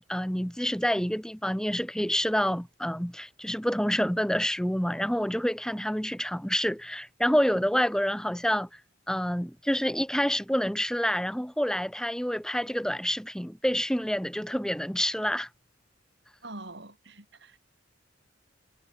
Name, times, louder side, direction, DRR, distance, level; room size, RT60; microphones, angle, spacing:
voice 1, 0.0-8.7 9.1-15.5, equal, 5° left, 1.8 m, -28 dB
voice 2, 16.4-17.6, right 2 dB, 60° right, 5.4 m, -44 dB
head